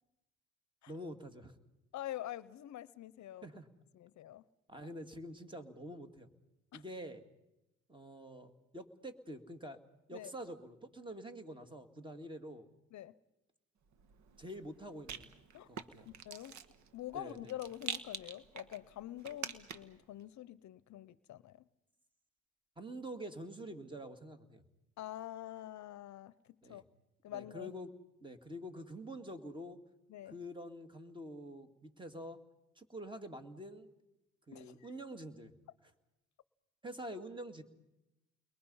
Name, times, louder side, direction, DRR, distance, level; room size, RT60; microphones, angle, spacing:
voice 1, 0.9-1.5 3.4-3.7 4.7-6.3 6.7-7.2 7.9-9.8 10.1-12.7 14.4-16.1 17.1-17.5 22.8-24.6 26.6-26.8 27.3-27.9 28.2-29.8 30.3-32.4 32.8-33.9 34.5-35.5 36.8-37.6, equal, 15° right, 7 dB, 2.3 m, -47 dB
voice 2, 1.9-3.5 3.9-4.4 6.7-6.8 10.1-10.3 12.9-13.1 15.5-15.7 16.1-16.6 16.9-21.7 25.0-26.8 27.2-27.7 30.1-30.3 34.5-34.9, left 13 dB, 65° left, 18 dB, 0.7 m, -46 dB
Rattle, 13.9-20.0, right 8 dB, 70° right, 1.3 m, -47 dB
30.0 x 22.0 x 5.6 m, 0.92 s
cardioid pair, 90°, 30 cm